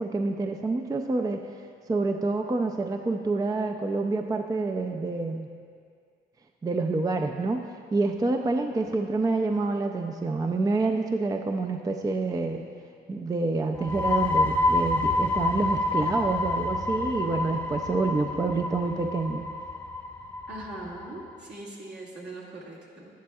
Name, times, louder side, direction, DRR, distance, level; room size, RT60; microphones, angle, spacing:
voice 1, 0.0-1.4 1.9-5.5 6.6-7.6 7.9-12.6 13.1-19.4, right 3 dB, 20° right, 4 dB, 0.4 m, -27 dB
sound 1, 13.7-21.2, left 2 dB, 10° left, 0.8 m, -28 dB
voice 2, 20.5-23.1, right 2 dB, 60° right, -5 dB, 2.1 m, -41 dB
11.0 x 10.5 x 2.3 m, 2.2 s
cardioid pair, 90°, 20 cm